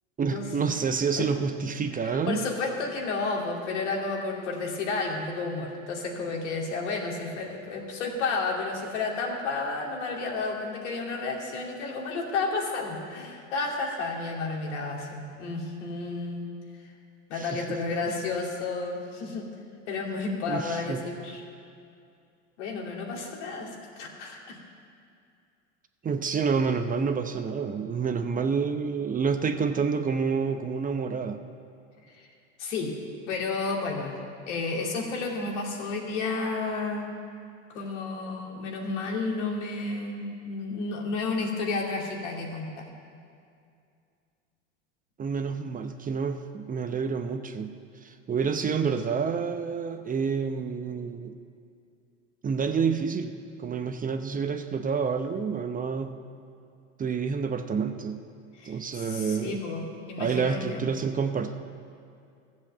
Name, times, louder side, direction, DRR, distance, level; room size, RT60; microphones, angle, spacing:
voice 1, 0.2-2.4 17.4-17.8 20.5-21.0 26.0-31.4 45.2-47.7 48.0-51.4 52.4-56.2 57.0-58.2 58.6-59.6 60.2-61.5, right 5 dB, 25° right, 8 dB, 0.8 m, -28 dB
voice 2, 2.0-16.5 17.3-19.4 19.9-21.4 22.6-24.6 32.1-32.3 32.6-32.9 33.3-34.2 34.5-37.1 37.7-42.8 58.6-60.8, left 3 dB, 75° left, 0 dB, 2.6 m, -31 dB
14.5 x 7.7 x 7.5 m, 2.4 s
hypercardioid pair, 95°, 35 cm